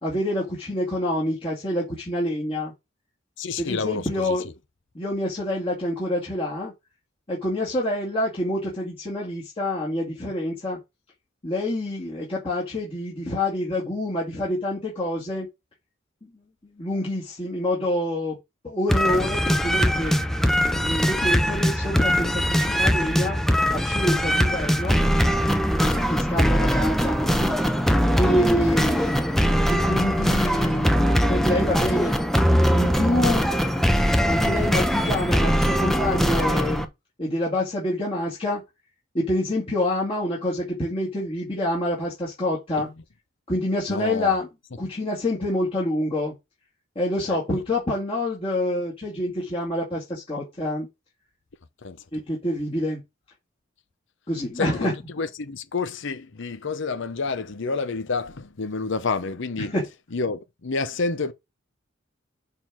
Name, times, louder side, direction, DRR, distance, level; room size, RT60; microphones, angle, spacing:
voice 1, 0.0-2.7 3.6-4.5 4.9-6.7 7.3-10.8 11.4-15.5 16.2-16.3 16.8-18.4 18.6-20.2 20.7-23.4 23.7-25.0 25.8-27.6 28.1-29.3 29.6-31.0 31.3-32.2 32.7-33.5 34.0-36.9 37.2-38.6 39.1-42.9 43.5-44.5 44.8-46.3 47.0-50.9 52.1-53.0 54.3-54.9 59.6-59.9, left 1 dB, 30° left, 2.2 m, -27 dB
voice 2, 3.4-4.4 42.8-42.9 43.9-44.3 47.3-47.4 51.8-52.0 54.6-59.7 60.1-61.3, left 4 dB, 65° left, 0.8 m, -29 dB
sound 1, 18.9-36.9, equal, ahead, 0.7 m, -21 dB
6.7 x 3.8 x 6.1 m
head